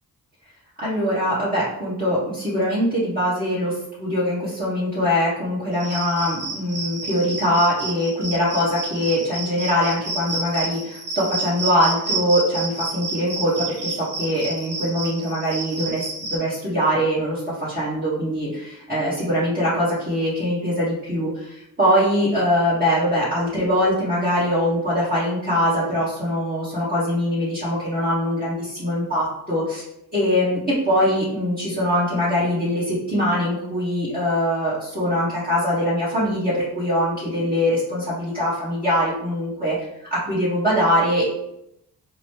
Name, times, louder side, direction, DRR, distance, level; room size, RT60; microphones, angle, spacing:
voice 1, 0.8-29.8 30.1-39.8 40.1-41.2, equal, 25° right, -11 dB, 1.2 m, -22 dB
Cricket, 5.7-16.4, right 2 dB, 85° right, 0.9 m, -30 dB
2.9 x 2.1 x 3.1 m, 0.81 s
cardioid pair, 60°, 37 cm